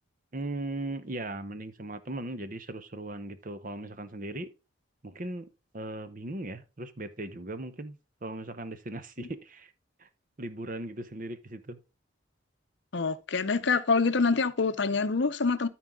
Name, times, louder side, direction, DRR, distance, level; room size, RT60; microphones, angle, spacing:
voice 1, 0.3-4.5 5.0-5.5 5.7-9.7 10.0-10.1 10.4-11.8, right 2 dB, 40° right, 0.8 m, -38 dB
voice 2, 12.9-15.7, left 4 dB, 60° left, 0.6 m, -26 dB
13.0 x 4.6 x 3.6 m
head